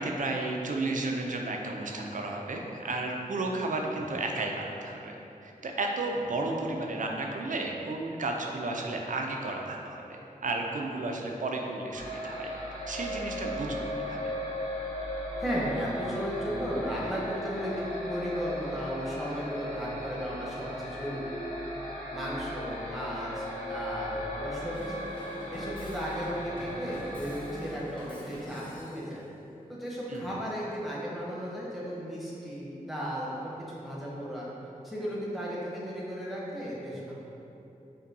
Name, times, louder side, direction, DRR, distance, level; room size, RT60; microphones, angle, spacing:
voice 1, 0.0-5.2 5.4-12.5 12.9-14.3 30.1-30.3, right 2 dB, 60° right, 1 dB, 0.4 m, -33 dB
sound 1, 12.0-27.6, equal, 80° left, 1.3 m, -37 dB
voice 2, 15.4-21.3 22.1-25.1 25.5-29.3 29.7-34.5 34.8-37.1, equal, ahead, -7 dB, 0.9 m, -35 dB
Drum kit / Drum, 24.7-29.1, equal, 35° left, 0.8 m, -46 dB
5.2 x 2.2 x 2.7 m, 2.9 s
cardioid pair, 55°, 15 cm